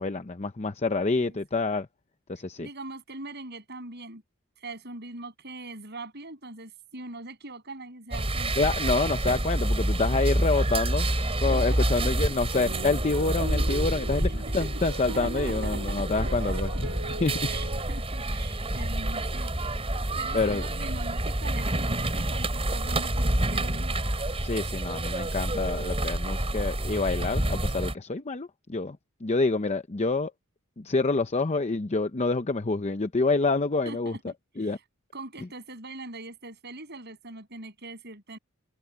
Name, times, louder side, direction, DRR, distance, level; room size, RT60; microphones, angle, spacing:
voice 1, 0.0-1.9 2.3-2.7 8.6-11.1 11.4-16.7 17.2-17.5 20.3-20.6 24.4-30.3 30.8-34.2 34.6-34.8, left 3 dB, 30° left, 0.7 m, -27 dB
voice 2, 1.1-1.4 2.6-4.2 4.6-8.5 11.5-12.1 14.2-14.3 14.6-14.8 15.1-16.5 17.4-19.6 20.1-24.0 33.8-34.3 34.6-34.8 35.1-38.4, right 2 dB, 50° right, 7.9 m, -42 dB
sound 1, 8.1-27.9, right 1 dB, 30° right, 3.6 m, -28 dB
sound 2, 12.5-17.8, right 1 dB, 85° right, 2.1 m, -39 dB
head